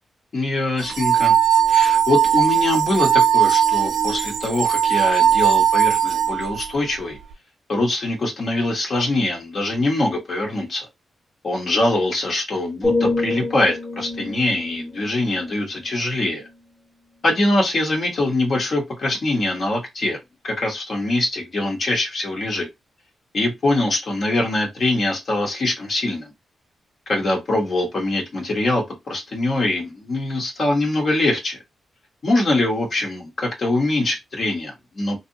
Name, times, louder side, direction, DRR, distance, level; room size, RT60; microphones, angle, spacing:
voice 1, 0.3-1.4 1.7-7.2 7.7-10.9 11.4-16.5 17.2-20.2 20.4-22.7 23.3-26.3 27.1-31.6 32.2-35.2, left 2 dB, 55° left, 0.9 m, -23 dB
sound 1, 0.8-6.7, right 9 dB, 75° right, 0.4 m, -18 dB
sound 2, 12.8-16.7 17.2-17.5, left 3 dB, 20° left, 1.0 m, -28 dB
2.7 x 2.3 x 2.6 m
cardioid pair, 65°, 0 cm